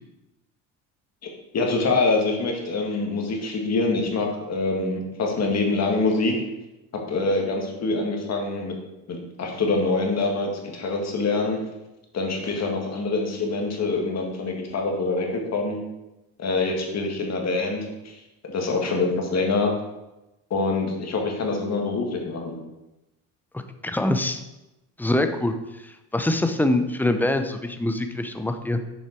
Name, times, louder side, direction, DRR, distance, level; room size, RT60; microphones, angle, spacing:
voice 1, 1.5-6.3 6.9-8.8 9.1-11.6 12.1-15.8 16.4-19.7 20.5-22.6, left 3 dB, 45° left, 1 dB, 1.9 m, -25 dB
voice 2, 23.5-24.4 25.0-25.5 25.8-28.8, left 1 dB, 5° left, 7 dB, 0.7 m, -24 dB
7.0 x 5.6 x 4.5 m, 0.97 s
supercardioid pair, 95°, 38 cm